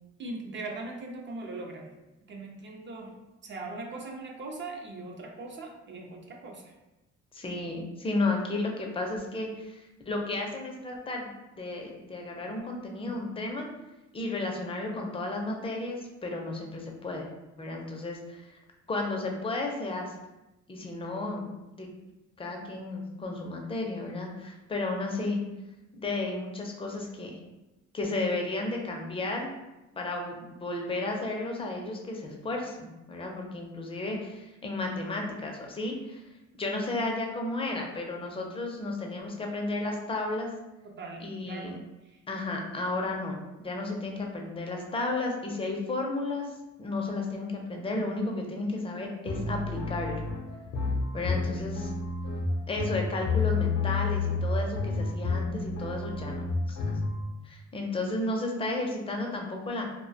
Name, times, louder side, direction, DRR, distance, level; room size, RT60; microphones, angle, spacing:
voice 1, 0.2-1.9 2.3-6.7 40.8-42.2 51.5-51.6, right 2 dB, 40° right, 2 dB, 0.5 m, -40 dB
voice 2, 7.3-11.3 11.6-13.7 14.1-17.3 17.6-18.5 18.9-20.1 20.7-21.5 21.7-21.9 22.4-25.4 25.9-27.4 27.9-29.5 30.0-36.2 36.5-40.5 41.2-41.8 42.3-50.2 51.1-51.9 52.7-57.0 57.4-59.9, left 2 dB, 20° left, 0 dB, 0.5 m, -33 dB
sound 1, 49.3-57.2, left 4 dB, 85° left, 0.6 m, -30 dB
2.2 x 2.1 x 2.6 m, 0.99 s
cardioid pair, 90°, 30 cm